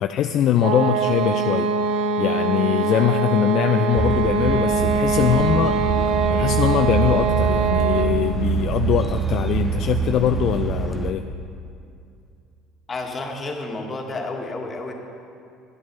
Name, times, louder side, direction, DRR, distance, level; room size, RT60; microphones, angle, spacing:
voice 1, 0.0-1.7 2.2-5.8 6.3-11.2, left 10 dB, 60° left, 6 dB, 0.3 m, -22 dB
sound 1, 0.6-8.3, right 4 dB, 75° right, 0.6 m, -23 dB
sound 2, 4.0-11.1, right 6 dB, 10° right, 0.6 m, -25 dB
voice 2, 12.9-14.9, left 2 dB, 35° left, 2 dB, 1.5 m, -30 dB
10.5 x 7.8 x 5.3 m, 2.4 s
hypercardioid pair, 75°, 0 cm